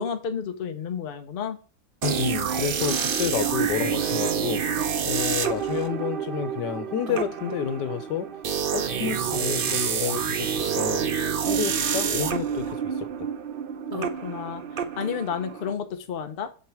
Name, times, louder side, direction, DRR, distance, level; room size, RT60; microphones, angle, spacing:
voice 1, 0.0-1.6 13.9-16.5, left 6 dB, 45° left, 0.8 m, -31 dB
voice 2, 2.0-8.3 8.7-10.5 10.7-11.2 11.5-13.3, left 9 dB, 90° left, 1.4 m, -30 dB
sound 1, 2.0-15.7, right 7 dB, 55° right, 0.6 m, -28 dB
7.4 x 3.4 x 4.5 m
omnidirectional pair, 1.8 m